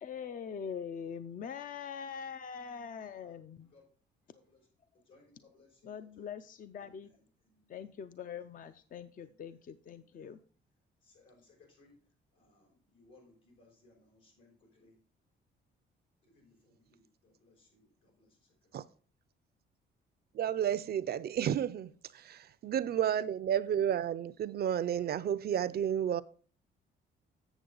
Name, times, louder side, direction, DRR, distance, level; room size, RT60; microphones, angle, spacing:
voice 1, 0.0-3.7 5.8-7.1 7.7-10.4, left 7 dB, 45° left, 0.5 m, -43 dB
voice 2, 3.2-3.8 4.2-4.7 5.0-6.4 6.8-7.8 9.2-9.4 9.9-10.3 11.0-11.9 12.3-14.9 16.2-18.9 22.2-22.4, left 3 dB, 85° left, 4.9 m, -65 dB
voice 3, 20.3-26.2, right 9 dB, 50° right, 0.5 m, -32 dB
8.1 x 6.9 x 3.9 m
cardioid pair, 90°, 20 cm